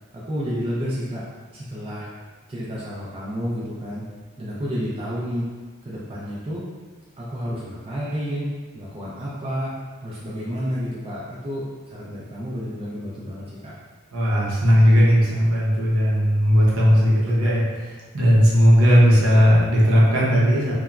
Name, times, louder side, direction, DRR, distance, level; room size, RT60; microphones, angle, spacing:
voice 1, 0.1-1.3 1.5-2.1 2.5-4.1 4.4-5.5 5.8-6.7 7.2-9.7 10.0-13.7, equal, 25° right, -7 dB, 0.4 m, -30 dB
voice 2, 14.1-20.7, equal, 65° right, -6 dB, 0.7 m, -17 dB
3.0 x 2.2 x 2.3 m, 1.4 s
head